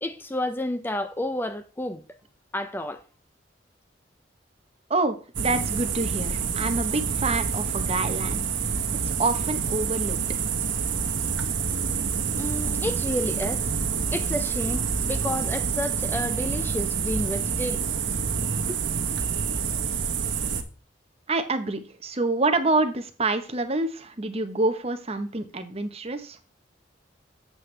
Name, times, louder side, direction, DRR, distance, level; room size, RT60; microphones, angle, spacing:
voice 1, 0.0-2.0 2.5-3.0 12.4-13.6 14.1-17.8 18.7-18.8, left 1 dB, 10° left, 0.4 m, -30 dB
voice 2, 4.9-8.5 9.2-10.2 21.3-26.4, right 2 dB, 35° right, 0.9 m, -27 dB
sound 1, 5.3-20.6, right 6 dB, 85° right, 1.1 m, -27 dB
7.8 x 7.6 x 3.3 m
head